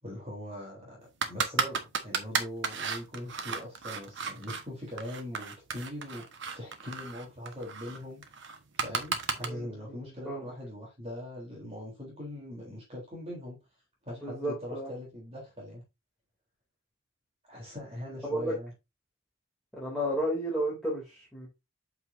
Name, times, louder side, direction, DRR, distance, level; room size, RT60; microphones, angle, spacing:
voice 1, 0.0-1.0 1.3-6.2 6.5-8.2 8.8-13.6 14.0-15.8 17.5-18.7, left 1 dB, 30° right, 3.5 m, -41 dB
sound 1, 1.2-4.6 5.0-9.5, right 5 dB, 55° right, 1.3 m, -33 dB
voice 2, 9.4-10.4 14.2-14.9 18.2-18.5 19.7-21.5, right 1 dB, ahead, 2.7 m, -33 dB
8.0 x 6.0 x 2.6 m
head